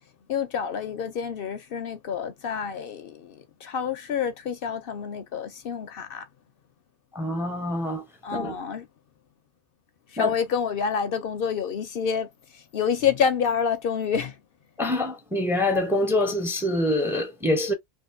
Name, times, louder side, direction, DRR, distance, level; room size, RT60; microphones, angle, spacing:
voice 1, 0.3-6.3 8.2-8.9 10.1-14.4, left 7 dB, 65° left, 0.8 m, -28 dB
voice 2, 7.1-8.0 8.3-8.5 10.2-10.3 14.8-17.7, left 1 dB, 5° right, 0.6 m, -25 dB
3.5 x 2.5 x 2.5 m
omnidirectional pair, 1.1 m